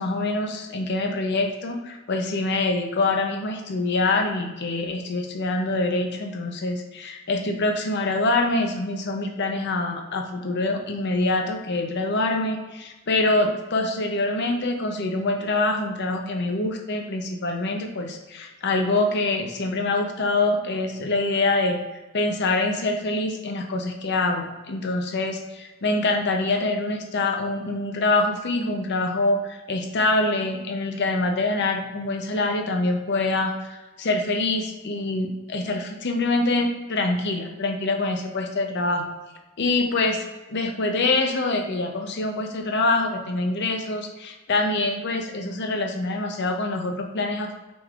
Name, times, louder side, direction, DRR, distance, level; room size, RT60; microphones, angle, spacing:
voice 1, 0.0-21.8 22.1-39.1 39.6-40.2 40.5-47.5, left 2 dB, 55° left, 4 dB, 0.6 m, -25 dB
5.9 x 3.6 x 2.4 m, 1.1 s
head